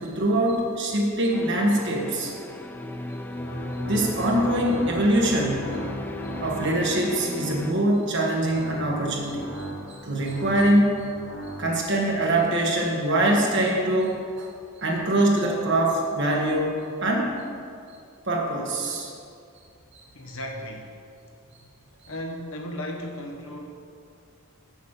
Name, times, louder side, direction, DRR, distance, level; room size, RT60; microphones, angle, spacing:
voice 1, 0.0-2.3 3.9-5.7 6.4-11.1 11.6-14.5 14.8-16.7 17.0-17.3 18.3-19.1 19.9-20.0, right 1 dB, 50° right, -1 dB, 1.5 m, -23 dB
sound 1, 1.3-7.7, left 1 dB, 10° left, 0.3 m, -36 dB
sound 2, 3.3-7.3 8.2-12.2, equal, 85° left, 1.5 m, -37 dB
voice 2, 20.1-21.0 22.1-23.7, equal, 65° left, 1 dB, 1.2 m, -35 dB
7.2 x 6.2 x 7.7 m, 2.4 s
head